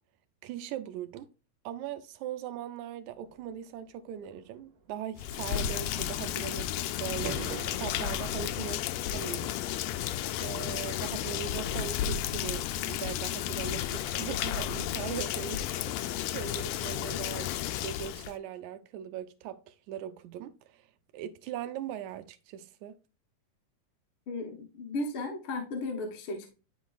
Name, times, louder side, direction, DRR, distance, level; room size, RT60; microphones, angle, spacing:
voice 1, 0.4-1.3 1.7-9.6 10.0-20.9 21.1-23.0, right 10 dB, 80° right, 1.9 m, -40 dB
sound 1, 3.1-13.0, right 6 dB, 60° right, 2.5 m, -49 dB
Rain, 5.2-18.3, left 11 dB, 85° left, 1.5 m, -33 dB
voice 2, 24.3-26.5, left 2 dB, 55° left, 1.6 m, -35 dB
10.0 x 4.0 x 2.4 m
omnidirectional pair, 3.6 m